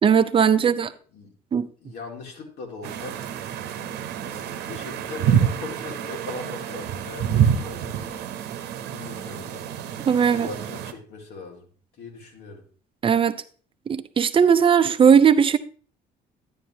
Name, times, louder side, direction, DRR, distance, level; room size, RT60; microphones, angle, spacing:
voice 1, 0.0-0.9 1.5-1.7 10.1-10.5 13.0-13.4 13.9-15.6, right 7 dB, 30° right, 0.6 m, -18 dB
voice 2, 0.6-1.3 1.8-3.2 4.2-8.2 8.9-9.7 10.3-11.7 12.0-12.6, left 3 dB, 75° left, 2.3 m, -40 dB
sound 1, 2.8-10.9, right 8 dB, 80° right, 0.9 m, -27 dB
10.5 x 9.3 x 2.8 m
cardioid pair, 110°, 17 cm